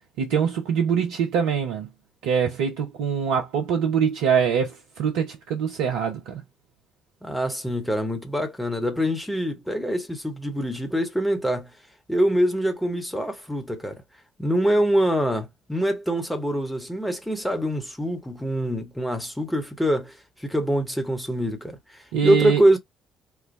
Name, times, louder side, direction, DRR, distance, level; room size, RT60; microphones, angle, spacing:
voice 1, 0.2-1.9 2.2-6.4 22.1-22.6, right 7 dB, 65° right, 0.6 m, -24 dB
voice 2, 7.2-11.7 12.1-14.0 14.4-22.8, equal, 5° left, 1.2 m, -24 dB
4.6 x 2.2 x 3.2 m
figure-of-eight pair, 45°, 0 cm